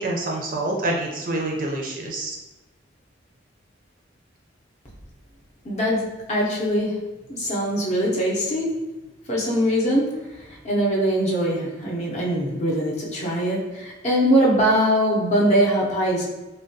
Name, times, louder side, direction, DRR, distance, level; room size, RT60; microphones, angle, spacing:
voice 1, 0.0-2.4, right 2 dB, 45° right, -1 dB, 0.4 m, -27 dB
voice 2, 5.6-7.0 7.3-8.8 9.3-16.2, equal, 35° left, -4 dB, 0.6 m, -22 dB
3.3 x 2.1 x 2.6 m, 1.1 s
head